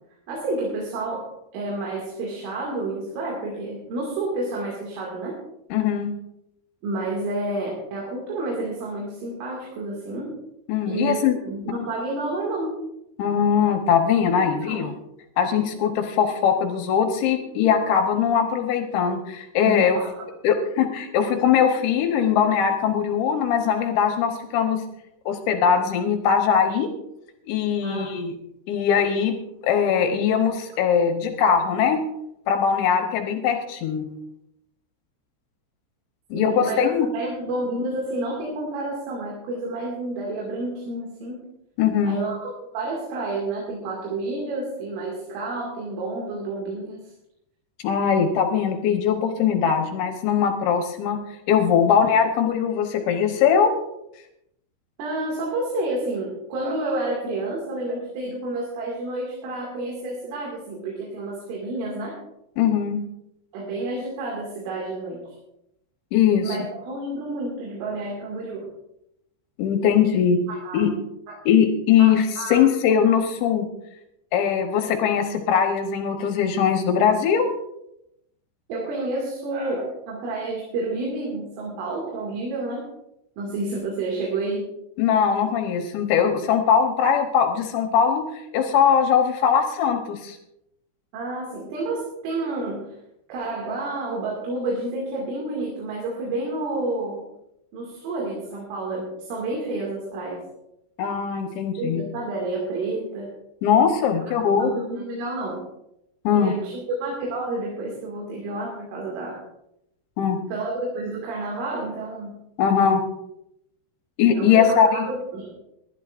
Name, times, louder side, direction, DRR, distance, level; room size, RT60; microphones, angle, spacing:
voice 1, 0.3-5.4 6.8-10.3 10.9-11.2 11.5-12.7 14.4-14.9 19.7-20.1 27.8-28.1 36.3-41.4 42.0-47.0 55.0-62.2 63.5-65.3 66.4-68.7 70.6-70.8 71.3-71.4 72.0-72.6 78.7-82.9 83.4-84.7 91.1-93.0 93.3-97.2 97.7-100.4 101.8-103.3 104.3-105.6 106.3-109.4 110.5-112.4 114.3-115.5, right 2 dB, 85° right, -3 dB, 4.9 m, -30 dB
voice 2, 5.7-6.1 10.7-11.4 13.2-14.9 15.4-20.0 20.4-24.8 25.3-26.9 27.5-28.3 28.7-29.3 29.6-32.0 32.5-34.1 36.3-37.1 41.8-42.2 47.8-51.2 51.5-53.7 62.6-63.0 66.1-66.6 69.6-70.4 70.7-70.9 71.5-73.7 74.3-77.5 85.0-90.4 101.0-102.0 103.6-104.7 106.2-106.5 110.2-110.4 112.6-113.0 114.2-115.1, left 7 dB, 75° left, 5 dB, 3.2 m, -21 dB
22.0 x 11.5 x 2.6 m, 0.82 s
omnidirectional pair, 5.6 m